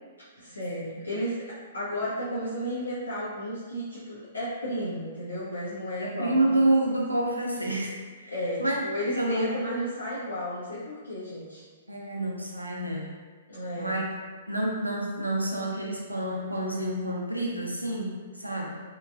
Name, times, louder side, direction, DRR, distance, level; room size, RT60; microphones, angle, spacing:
voice 1, 0.4-1.5 1.7-6.7 8.3-11.6 13.5-14.0, equal, 80° left, -10 dB, 0.6 m, -33 dB
voice 2, 6.0-8.3 8.6-8.8 9.1-9.6 11.9-13.1 13.8-14.1 14.5-18.8, right 1 dB, 85° right, -2 dB, 0.5 m, -28 dB
2.9 x 2.3 x 2.3 m, 1.5 s
figure-of-eight pair, 115°, 0 cm